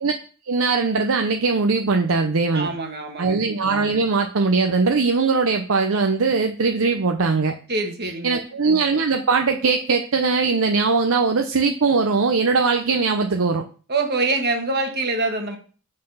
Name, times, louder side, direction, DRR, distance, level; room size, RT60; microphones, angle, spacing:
voice 1, 0.5-2.7 3.2-7.5 8.2-13.6, right 4 dB, 65° right, 4 dB, 0.7 m, -20 dB
voice 2, 2.5-3.4 7.7-8.4 13.9-15.6, right 3 dB, 50° right, 4 dB, 1.5 m, -24 dB
7.6 x 4.1 x 5.6 m, 0.39 s
head